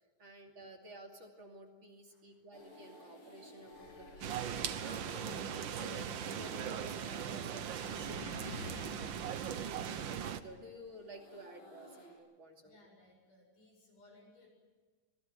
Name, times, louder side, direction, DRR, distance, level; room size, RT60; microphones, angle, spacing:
voice 1, 0.2-9.4 9.9-12.8, equal, 40° right, 2 dB, 3.3 m, -53 dB
sound 1, 2.5-12.2, left 1 dB, 65° left, 9.4 m, -58 dB
sound 2, 3.7-10.6, left 4 dB, 45° left, 1.8 m, -53 dB
sound 3, 4.2-10.4, right 8 dB, 75° right, 1.0 m, -39 dB
voice 2, 12.6-14.5, left 2 dB, 85° left, 1 dB, 9.4 m, -62 dB
25.5 x 20.5 x 9.7 m, 1.4 s
omnidirectional pair, 3.6 m